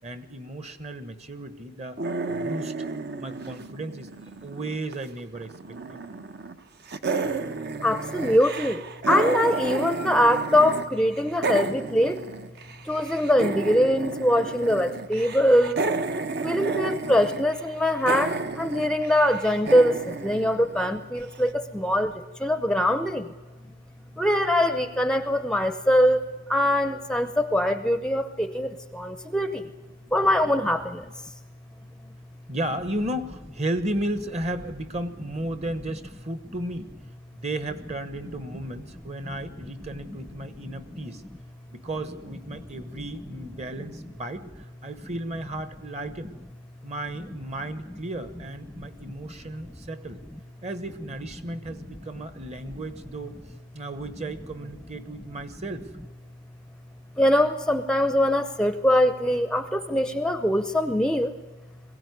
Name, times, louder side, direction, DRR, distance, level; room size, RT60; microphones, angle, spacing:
voice 1, 0.0-2.0 2.3-5.8 24.1-24.2 30.0-30.1 32.5-36.9 37.3-41.2 41.7-46.3 46.8-50.2 50.6-53.4 53.7-55.9, right 1 dB, 35° right, 12 dB, 1.3 m, -34 dB
sound 1, 2.0-5.1 5.4-6.6 6.9-10.9 11.1-21.2, right 3 dB, 55° right, 1.1 m, -32 dB
voice 2, 7.8-12.6 12.8-15.8 16.4-23.3 24.2-26.2 26.5-29.6 30.1-31.1 40.9-41.0 48.8-48.9 57.2-61.3, equal, 5° left, 10 dB, 0.7 m, -23 dB
22.0 x 16.5 x 9.6 m, 1.2 s
head